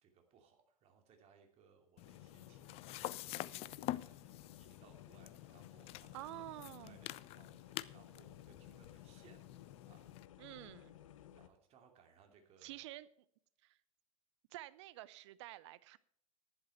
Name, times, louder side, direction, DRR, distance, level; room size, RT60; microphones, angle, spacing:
voice 1, 0.0-6.4 6.7-9.5 9.8-10.1 11.3-12.9, right 6 dB, 35° right, 4 dB, 2.7 m, -67 dB
sound 1, 2.0-11.5, left 11 dB, 65° left, 1.0 m, -58 dB
sound 2, 2.0-10.3, left 16 dB, 35° left, 0.5 m, -47 dB
voice 2, 6.1-7.0 10.4-11.0 12.6-13.1 13.6-13.8 14.5-16.0, right 16 dB, 55° right, 18 dB, 0.7 m, -49 dB
11.5 x 11.0 x 4.4 m, 0.65 s
figure-of-eight pair, 95°, 18 cm